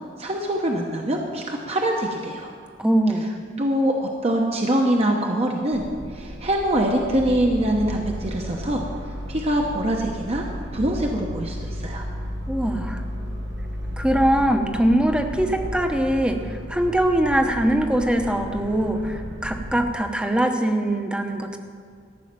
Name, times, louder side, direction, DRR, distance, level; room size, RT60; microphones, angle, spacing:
voice 1, 0.2-2.5 3.6-5.8 6.1-8.8 9.3-10.4 10.7-12.0, right 1 dB, 35° right, 1 dB, 0.9 m, -24 dB
voice 2, 2.8-3.3 12.5-13.0 14.0-21.6, right 1 dB, 5° right, 5 dB, 0.8 m, -22 dB
sound 1, 5.7-19.9, equal, 75° right, 1.6 m, -33 dB
14.0 x 6.4 x 8.7 m, 2.1 s
head